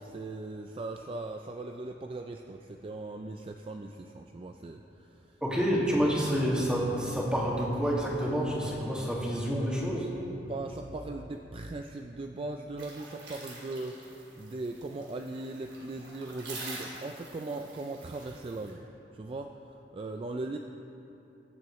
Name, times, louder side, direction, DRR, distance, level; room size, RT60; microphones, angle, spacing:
voice 1, 0.0-5.3 10.5-18.8 19.1-19.5 19.9-20.6, right 2 dB, 30° right, 4 dB, 0.4 m, -39 dB
voice 2, 5.4-10.1, equal, 5° right, -5 dB, 2.0 m, -28 dB
sound 1, 12.8-18.7, right 2 dB, 80° right, 2.9 m, -46 dB
22.0 x 7.6 x 3.2 m, 2.9 s
head